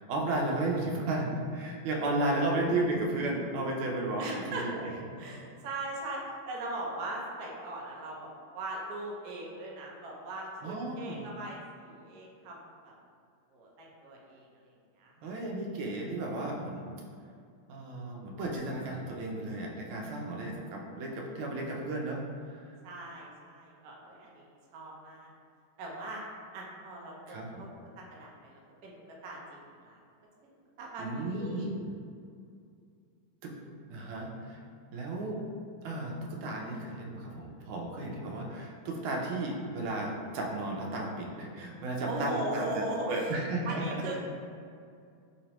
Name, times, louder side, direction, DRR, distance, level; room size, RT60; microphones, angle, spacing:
voice 1, 0.0-4.9 5.2-5.3 10.6-11.2 15.2-16.8 17.7-22.6 27.3-27.7 31.0-31.7 33.4-33.5 33.9-34.6 34.9-35.4 35.8-43.8, right 2 dB, 85° right, 0 dB, 1.4 m, -34 dB
voice 2, 4.2-4.7 5.2-8.3 8.5-12.9 13.5-14.7 15.0-15.3 22.8-25.3 25.8-26.2 26.5-27.7 28.0-28.9 29.2-30.0 30.8-31.6 42.1-43.4 43.7-44.3, right 2 dB, 70° right, -3 dB, 0.9 m, -39 dB
3.4 x 3.0 x 2.9 m, 2.3 s
omnidirectional pair, 2.2 m